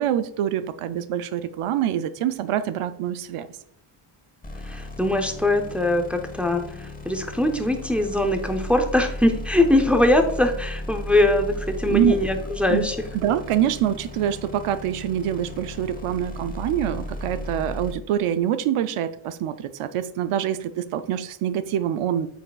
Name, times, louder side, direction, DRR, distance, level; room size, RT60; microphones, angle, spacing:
voice 1, 0.0-3.5 11.9-12.2 12.7-12.9 13.1-22.3, right 10 dB, 80° right, 12 dB, 0.6 m, -25 dB
sound 1, 4.4-17.9, left 1 dB, 15° left, 0.9 m, -35 dB
voice 2, 4.6-13.0, left 1 dB, 5° right, 5 dB, 0.5 m, -22 dB
7.7 x 6.4 x 2.3 m, 0.73 s
wide cardioid pair, 135°, 50 cm